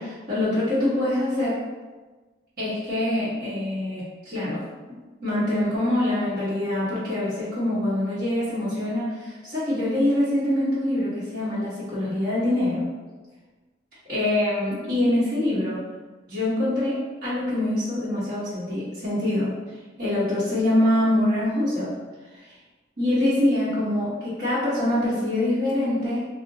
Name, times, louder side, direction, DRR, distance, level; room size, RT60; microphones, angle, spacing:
voice 1, 0.0-1.6 2.6-12.9 14.1-15.8 16.3-19.5 20.0-21.9 22.3-22.5 23.0-26.3, left 1 dB, 50° right, -11 dB, 1.0 m, -24 dB
2.5 x 2.1 x 3.7 m, 1.3 s
head